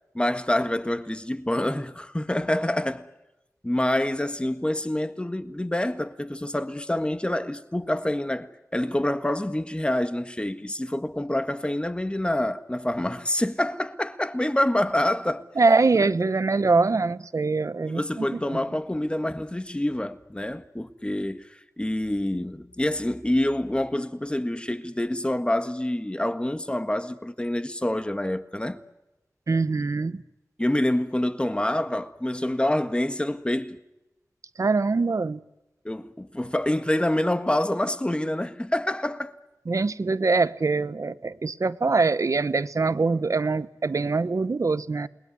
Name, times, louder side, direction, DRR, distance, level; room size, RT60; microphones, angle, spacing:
voice 1, 0.1-3.1 3.6-15.5 16.0-16.1 17.8-28.8 30.6-33.8 35.8-39.3, left 1 dB, 20° left, 1.6 m, -27 dB
voice 2, 15.6-18.6 29.5-30.2 34.6-35.4 39.7-45.1, right 3 dB, 65° right, 1.0 m, -23 dB
28.5 x 20.5 x 9.5 m
wide cardioid pair, 50°, 6 cm